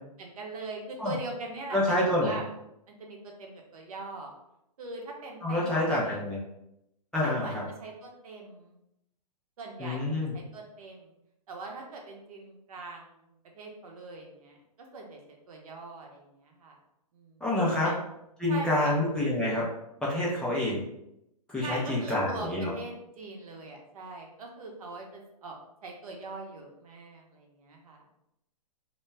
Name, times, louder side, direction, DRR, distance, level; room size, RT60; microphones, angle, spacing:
voice 1, 0.2-2.4 2.9-4.3 4.8-6.2 7.2-8.8 9.6-11.1 11.5-14.6 14.9-15.2 15.5-16.7 17.1-17.4 17.8-18.1 18.5-19.0 21.6-25.6 25.8-28.2, right 2 dB, 65° right, 1 dB, 0.7 m, -42 dB
voice 2, 1.7-2.3 5.4-6.4 7.1-7.6 9.8-10.3 17.4-17.9 18.4-19.7 20.0-20.8 21.5-22.7, left 1 dB, 5° left, -7 dB, 0.3 m, -27 dB
2.2 x 2.1 x 3.3 m, 0.83 s
hypercardioid pair, 125°, 20 cm